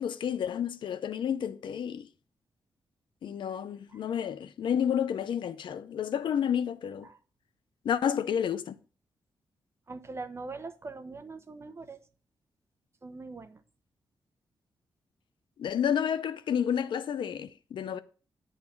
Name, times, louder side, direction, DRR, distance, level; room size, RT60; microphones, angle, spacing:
voice 1, 0.0-2.1 3.2-7.1 7.8-8.8 15.6-18.0, left 8 dB, 80° left, 0.7 m, -30 dB
voice 2, 9.9-12.0 13.0-13.6, right 3 dB, 35° right, 1.1 m, -42 dB
11.0 x 4.1 x 7.1 m
cardioid pair, 95°, 8 cm